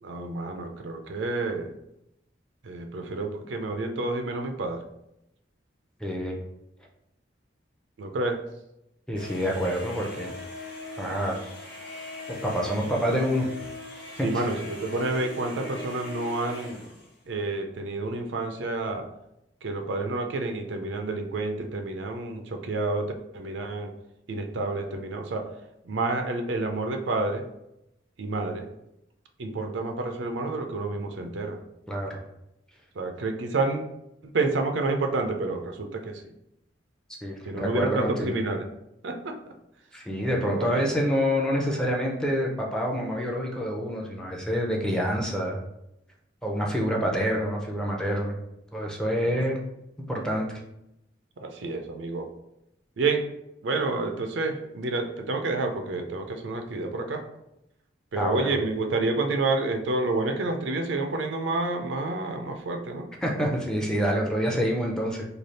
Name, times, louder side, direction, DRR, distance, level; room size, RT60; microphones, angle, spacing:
voice 1, 0.0-1.7 2.6-4.9 8.0-8.4 14.2-16.9 17.3-19.1 19.6-23.9 24.3-25.5 25.8-27.5 28.2-28.7 29.4-31.6 32.9-33.8 34.2-36.2 37.4-38.7 39.0-39.5 40.4-40.9 49.2-49.3 51.4-52.3 53.0-53.3 53.6-57.2 58.1-63.1 64.5-64.6, right 3 dB, 80° right, 5 dB, 0.5 m, -29 dB
voice 2, 6.0-6.4 9.1-10.3 11.0-11.3 12.3-13.5 31.9-32.2 37.2-38.4 39.9-45.6 46.4-48.4 48.7-49.6 50.1-50.6 58.2-58.5 63.2-65.2, equal, 5° left, -1 dB, 0.5 m, -27 dB
sound 1, 9.1-17.1, left 2 dB, 75° left, 1.3 m, -41 dB
3.3 x 2.3 x 4.0 m, 0.84 s
head